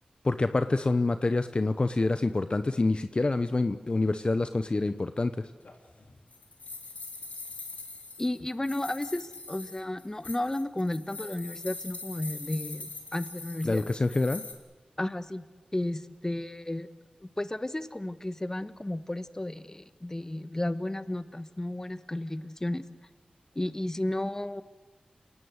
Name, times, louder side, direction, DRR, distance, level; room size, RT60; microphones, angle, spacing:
voice 1, 0.2-5.5 13.6-14.4, left 2 dB, 40° left, 10 dB, 0.9 m, -27 dB
sound 1, 5.6-14.5, left 3 dB, 75° left, 3.0 m, -43 dB
voice 2, 8.2-13.9 15.0-15.4 15.7-16.9 17.2-22.8 23.5-24.6, left 1 dB, 20° left, 13 dB, 1.2 m, -33 dB
27.5 x 18.5 x 8.2 m, 1.3 s
wide cardioid pair, 60°, 2 cm